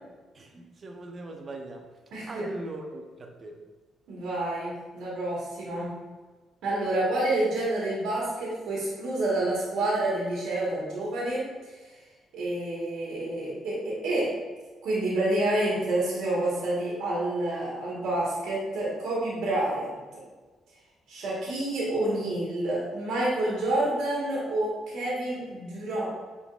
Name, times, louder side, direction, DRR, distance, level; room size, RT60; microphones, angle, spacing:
voice 1, 0.3-1.9 2.3-3.6, right 2 dB, 40° right, 2 dB, 0.7 m, -39 dB
voice 2, 2.1-2.4 4.1-5.9 6.6-11.5 12.3-14.3 14.8-19.9 21.1-26.1, right 1 dB, 80° right, -6 dB, 1.4 m, -28 dB
5.8 x 3.8 x 2.4 m, 1.3 s
cardioid pair, 90°, 0 cm